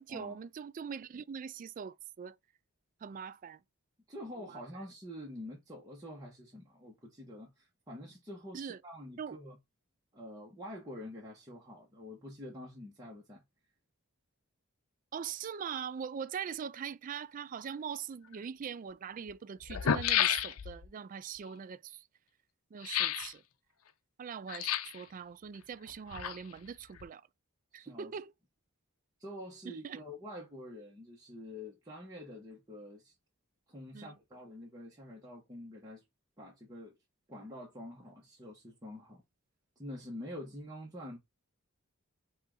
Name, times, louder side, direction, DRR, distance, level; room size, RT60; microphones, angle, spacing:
voice 1, 0.0-2.4 3.0-3.6 4.4-4.8 8.5-8.8 9.2-9.4 15.1-22.1 22.7-23.4 24.2-27.2 27.7-28.3 29.6-30.0 33.9-34.1, right 7 dB, 40° right, 0.3 m, -42 dB
voice 2, 4.1-9.6 10.1-13.4 27.7-28.1 29.2-33.1 33.7-36.0 36.4-36.9 37.3-39.2 39.8-41.2, left 1 dB, 15° right, 1.1 m, -47 dB
sound 1, 18.3-18.4 19.3-19.4 19.6-20.9 22.8-23.3 24.5-25.0 25.9-26.7 27.0-27.1, left 9 dB, 85° left, 0.5 m, -31 dB
5.4 x 2.5 x 3.9 m
head